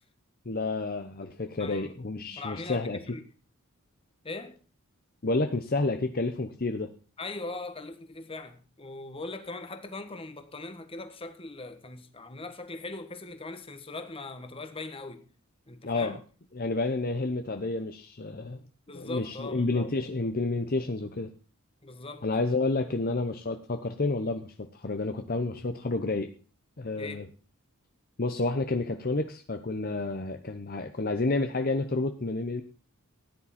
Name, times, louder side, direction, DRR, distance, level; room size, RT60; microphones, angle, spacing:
voice 1, 0.5-3.0 5.2-6.9 15.8-16.2 16.5-18.6 18.9-21.3 22.2-26.3 26.8-27.2 28.2-32.6, left 3 dB, 40° left, 0.9 m, -30 dB
voice 2, 1.6-1.9 2.3-3.2 4.2-4.6 7.2-15.2 15.7-16.2 18.9-19.9 21.8-22.3 27.0-27.2, left 2 dB, 25° left, 1.4 m, -40 dB
15.5 x 10.0 x 4.3 m
head